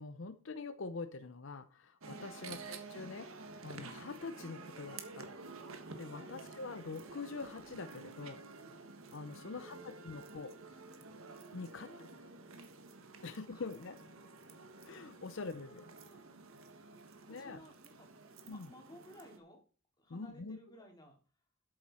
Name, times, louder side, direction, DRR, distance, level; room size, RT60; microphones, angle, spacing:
voice 1, 0.0-3.3 3.6-5.3 6.0-8.4 9.1-10.6 11.5-11.9 13.2-14.0 14.8-15.9 17.3-17.6 18.5-18.7 20.1-20.6, left 4 dB, 60° left, 10 dB, 0.6 m, -45 dB
sound 1, 2.0-19.4, right 3 dB, 75° right, 1.5 m, -51 dB
voice 2, 2.3-2.6 6.2-6.3 9.4-10.2 11.7-12.1 13.5-13.9 15.3-16.2 17.2-18.1 18.4-19.6 20.0-21.2, left 1 dB, 20° left, 2 dB, 2.6 m, -58 dB
12.5 x 7.7 x 4.3 m, 0.37 s
head